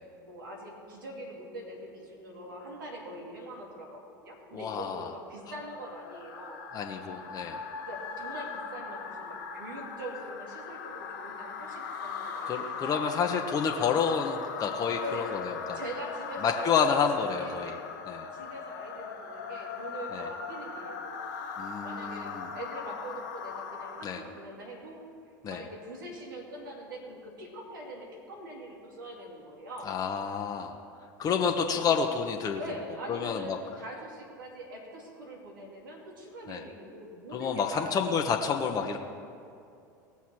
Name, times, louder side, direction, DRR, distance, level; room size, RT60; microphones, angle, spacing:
voice 1, 0.2-6.6 7.8-13.1 15.0-15.3 15.7-16.7 17.0-17.8 18.3-21.2 21.8-25.0 25.4-29.9 31.5-31.7 32.6-37.9, right 1 dB, 85° right, -1 dB, 2.6 m, -43 dB
voice 2, 4.5-5.1 6.7-7.6 12.5-15.8 16.4-17.7 18.1-18.3 20.1-20.3 21.6-22.5 24.0-24.2 25.4-25.6 29.8-30.8 31.2-32.6 33.1-33.6 36.5-36.6 37.3-39.0, left 6 dB, 35° left, 2 dB, 1.0 m, -29 dB
sound 1, 5.4-24.4, left 5 dB, 70° left, 1.8 m, -39 dB
18.5 x 7.0 x 4.7 m, 2.5 s
hypercardioid pair, 85°, 11 cm